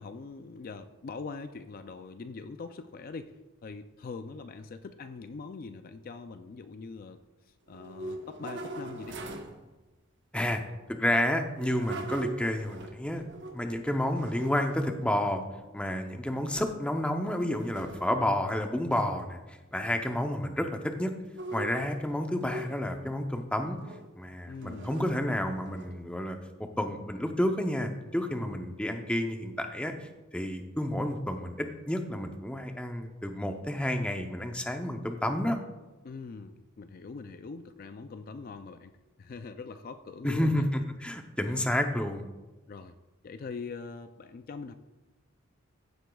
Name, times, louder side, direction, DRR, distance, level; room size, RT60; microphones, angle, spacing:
voice 1, 0.0-3.3 3.6-7.2 7.5-9.2 24.5-24.9 36.0-38.9 39.2-40.7 41.4-41.7 42.7-42.9 43.2-44.7, left 4 dB, 45° left, 9 dB, 0.3 m, -42 dB
sound 1, 7.7-9.6 11.5-13.7 14.1-15.0 15.6-16.1 16.6-16.9 17.2-18.3 18.8-19.0 21.2-23.1 23.7-24.1 24.6-26.1, right 2 dB, 55° right, 1.0 m, -42 dB
voice 2, 10.9-13.2 13.5-15.4 15.7-21.1 21.5-23.8 24.2-26.4 26.8-35.6 40.2-42.2, left 1 dB, 5° left, 5 dB, 0.6 m, -30 dB
15.0 x 8.0 x 2.3 m, 1.1 s
head